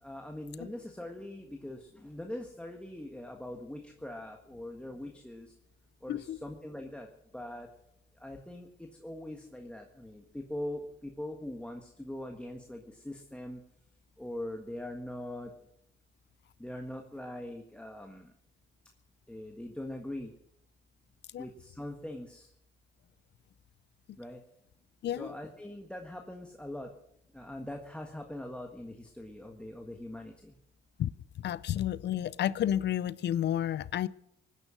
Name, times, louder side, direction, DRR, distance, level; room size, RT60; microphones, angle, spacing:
voice 1, 0.0-5.5 6.0-7.1 7.3-7.7 8.2-13.6 14.2-15.5 16.6-18.3 19.3-20.3 21.4-22.5 24.2-24.4 25.1-26.9 27.3-30.5, left 1 dB, 5° left, 4 dB, 1.5 m, -42 dB
voice 2, 31.4-34.1, left 11 dB, 60° left, 19 dB, 0.5 m, -31 dB
18.5 x 10.0 x 6.3 m, 0.76 s
cardioid pair, 90°, 20 cm